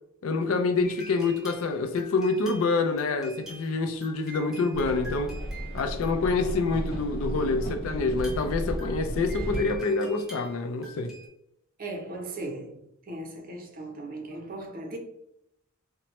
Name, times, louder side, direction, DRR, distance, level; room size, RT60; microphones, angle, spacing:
voice 1, 0.2-5.3 5.7-11.1, left 3 dB, 80° left, 0.4 m, -27 dB
sound 1, 0.8-7.1 8.1-11.3, right 1 dB, ahead, 0.9 m, -47 dB
sound 2, 4.7-9.8, equal, 45° left, 1.0 m, -34 dB
voice 2, 11.8-12.8 13.1-15.0, right 2 dB, 45° right, 0.6 m, -38 dB
2.9 x 2.1 x 3.0 m
head